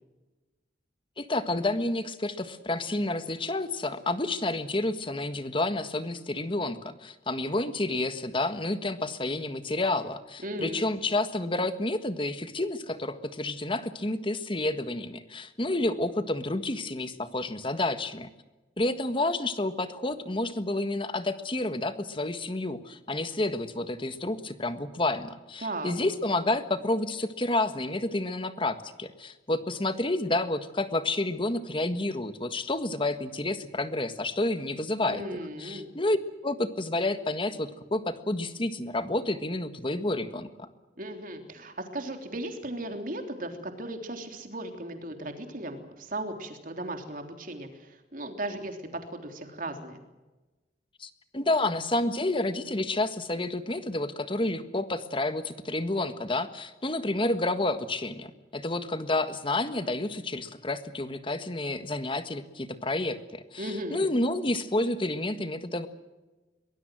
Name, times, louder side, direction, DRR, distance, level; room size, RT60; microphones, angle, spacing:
voice 1, 1.2-18.3 18.8-35.2 35.6-36.2 36.4-40.7 51.0-65.9, left 2 dB, 30° left, 10 dB, 1.6 m, -30 dB
voice 2, 10.4-10.9 25.6-25.9 35.0-35.9 41.0-50.0 63.6-64.0, right 1 dB, 50° right, 5 dB, 3.4 m, -36 dB
23.0 x 20.5 x 7.7 m, 1.1 s
head